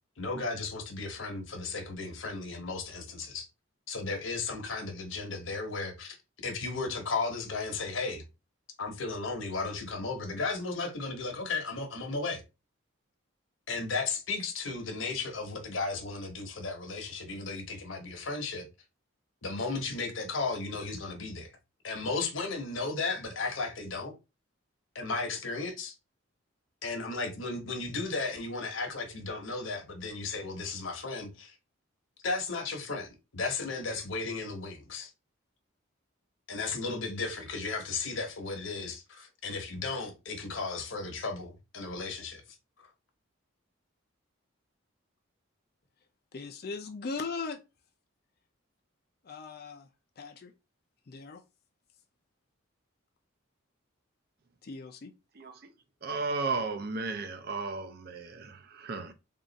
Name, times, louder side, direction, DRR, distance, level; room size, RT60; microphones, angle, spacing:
voice 1, 0.2-3.5 3.9-6.2 6.4-8.2 8.8-12.4 13.7-18.7 19.4-21.5 21.8-24.1 24.9-25.9 26.8-31.5 32.2-35.1 36.5-42.4 42.8-42.9, left 3 dB, 70° left, 1.0 m, -35 dB
voice 2, 46.3-47.6 49.2-49.9 50.2-50.5 51.1-51.4 54.6-55.1, left 4 dB, 45° left, 0.4 m, -38 dB
voice 3, 55.4-55.7 56.0-59.1, right 4 dB, 50° right, 0.5 m, -34 dB
3.7 x 2.4 x 3.9 m
head